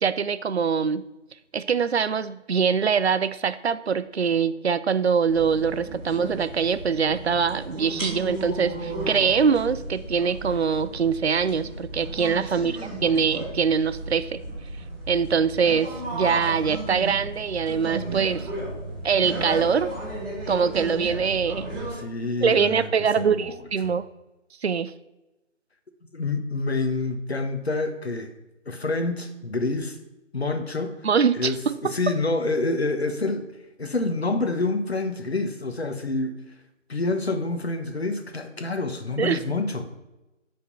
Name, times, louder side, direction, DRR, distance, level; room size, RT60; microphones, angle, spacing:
voice 1, 0.0-1.0 1.5-14.4 15.1-18.5 19.0-19.9 20.5-21.7 22.4-24.1 24.6-24.9 31.0-31.8 39.2-39.4, right 6 dB, 60° right, 14 dB, 0.5 m, -23 dB
sound 1, 5.3-21.9, right 1 dB, 5° right, 2.1 m, -34 dB
voice 2, 12.6-13.1 21.9-22.9 23.2-23.9 26.1-28.3 28.7-30.0 30.3-31.1 31.3-36.4 36.9-39.9, left 3 dB, 55° left, 6 dB, 1.2 m, -28 dB
8.2 x 5.3 x 5.8 m, 0.99 s
figure-of-eight pair, 160°, 37 cm